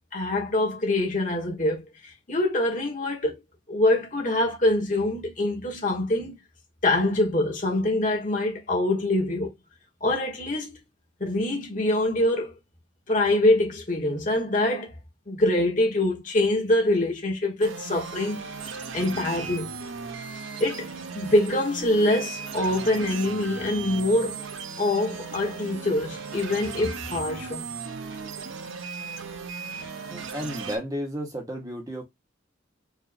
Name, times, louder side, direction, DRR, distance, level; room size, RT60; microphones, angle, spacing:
voice 1, 0.1-3.4 3.7-6.3 6.8-9.5 10.0-10.7 11.2-12.5 13.1-14.9 15.3-18.4 18.9-19.8 20.6-24.4 24.8-27.7, left 1 dB, 40° left, 1.3 m, -24 dB
sound 1, 17.6-30.8, right 5 dB, 90° right, 0.7 m, -37 dB
voice 2, 29.8-32.0, equal, 20° right, 1.0 m, -33 dB
4.8 x 2.7 x 2.5 m
head